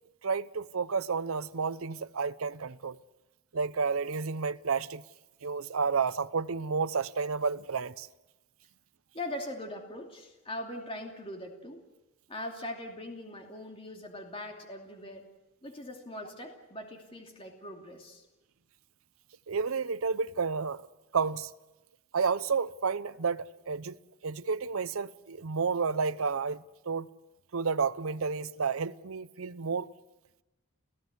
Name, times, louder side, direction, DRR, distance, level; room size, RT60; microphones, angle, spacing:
voice 1, 0.2-3.0 3.5-5.0 5.4-8.1 19.5-20.8 21.1-21.5 22.1-24.0 24.2-27.1 27.5-29.9, right 5 dB, 75° right, 0.7 m, -31 dB
voice 2, 9.1-11.8 12.3-15.3 15.6-18.2, left 1 dB, 25° left, 2.7 m, -41 dB
29.5 x 15.5 x 8.1 m
head